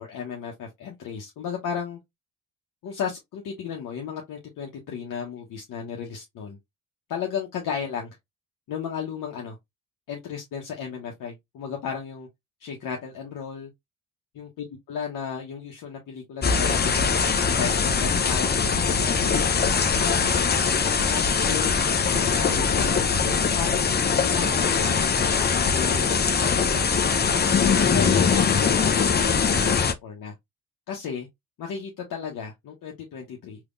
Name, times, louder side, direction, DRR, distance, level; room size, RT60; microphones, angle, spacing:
voice 1, 0.0-2.0 2.8-6.6 7.1-8.2 8.7-9.6 10.1-12.3 12.6-13.7 14.3-18.6 19.2-19.3 19.7-23.0 23.6-23.8 24.1-27.2 27.7-30.3 30.9-31.3 31.6-33.6, left 7 dB, 60° left, 1.0 m, -34 dB
sound 1, 16.4-29.9, left 6 dB, 25° left, 0.6 m, -22 dB
3.4 x 3.0 x 2.5 m
supercardioid pair, 65°, 37 cm